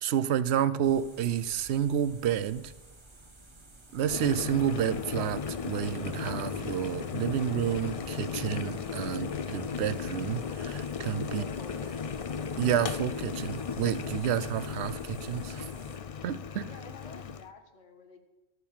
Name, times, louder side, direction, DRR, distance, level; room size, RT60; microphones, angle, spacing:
voice 1, 0.0-2.7 3.9-11.4 12.6-15.6 16.2-16.7, right 9 dB, 65° right, 16 dB, 0.8 m, -30 dB
sound 1, 0.8-16.0, right 2 dB, 25° right, 1.3 m, -53 dB
Boiling, 4.0-17.5, left 6 dB, 60° left, 0.3 m, -36 dB
voice 2, 11.3-12.1 16.6-18.2, left 3 dB, 80° left, 6 dB, 1.8 m, -49 dB
13.0 x 7.0 x 7.3 m, 1.1 s
omnidirectional pair, 1.2 m